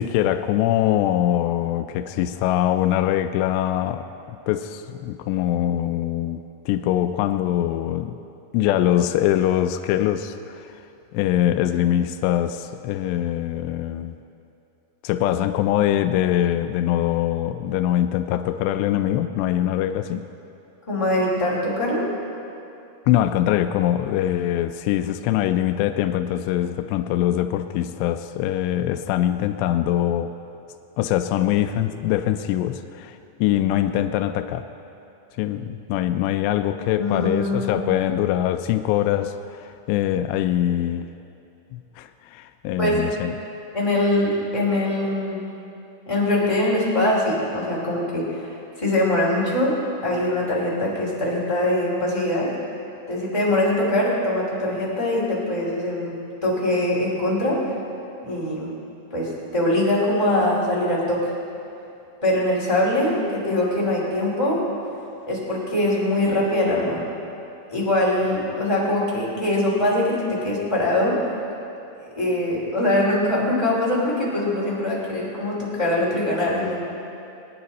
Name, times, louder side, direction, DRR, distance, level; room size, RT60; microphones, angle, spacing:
voice 1, 0.0-4.1 4.5-8.2 8.5-10.8 11.1-14.2 15.0-20.3 23.1-30.3 31.0-34.7 35.4-41.1 41.7-43.3, left 12 dB, 85° left, 8 dB, 2.6 m, -23 dB
voice 2, 20.9-22.1 37.0-37.9 42.8-43.0 43.7-45.5 46.1-48.5 48.8-49.7 50.0-52.5 53.1-56.1 56.4-57.6 58.2-58.7 59.1-61.3 62.2-64.6 65.3-67.0 67.7-71.2 72.0-76.8, left 1 dB, 10° left, -6 dB, 1.9 m, -22 dB
21.5 x 9.5 x 4.1 m, 2.7 s
omnidirectional pair, 5.1 m